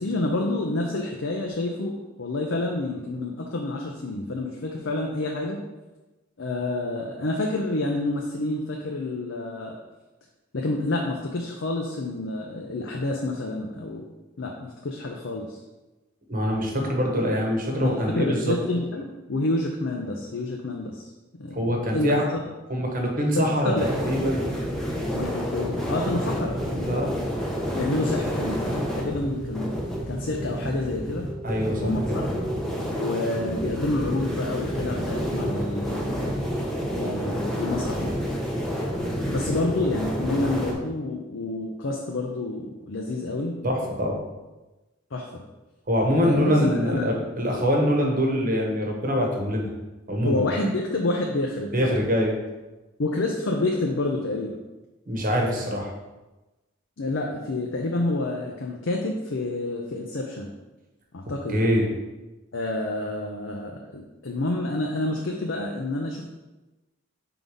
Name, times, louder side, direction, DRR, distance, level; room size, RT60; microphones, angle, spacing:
voice 1, 0.0-5.6 6.4-9.8 10.5-14.0 14.4-15.6 17.8-21.1 21.4-22.4 23.3-24.2 25.1-27.1 27.7-31.3 31.8-32.3 33.0-36.1 36.9-38.1 39.2-43.6 45.1-45.4 46.1-47.1 50.2-51.9 53.0-54.6 57.0-60.5 61.1-61.6 62.5-66.3, left 2 dB, 65° left, 0 dB, 0.6 m, -28 dB
voice 2, 16.3-18.5 21.5-22.2 22.7-24.4 26.9-27.1 31.4-32.2 43.6-44.2 45.9-49.7 50.1-50.7 51.7-52.3 55.1-55.9 61.5-61.9, equal, 45° right, 0 dB, 1.2 m, -24 dB
sound 1, 23.8-40.7, equal, 5° left, 0.8 m, -29 dB
4.7 x 3.9 x 5.3 m, 1.1 s
head